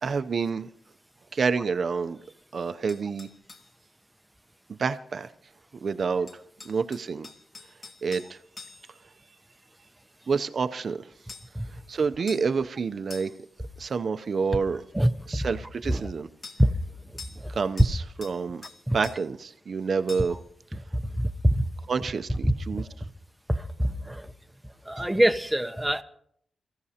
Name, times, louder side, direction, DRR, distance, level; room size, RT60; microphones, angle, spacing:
voice 1, 0.0-0.7 1.3-2.2 2.5-3.3 4.8-5.3 5.8-6.3 6.6-7.3 8.0-8.4 10.3-11.1 11.9-13.3 13.8-14.8 15.3-16.3 17.5-18.6 18.9-20.4 21.9-22.9, right 5 dB, 50° right, 0.5 m, -28 dB
sound 1, 2.9-3.7 6.3-9.0 11.3-11.6 12.3-12.5 13.1-13.5 16.4-16.6 17.2-17.5 17.8-18.4 18.6-19.2 20.1-20.4, left 4 dB, 45° left, 1.7 m, -45 dB
voice 2, 23.5-24.2 24.9-26.0, right 1 dB, 5° right, 0.7 m, -25 dB
28.0 x 15.0 x 2.8 m
wide cardioid pair, 120°, 0 cm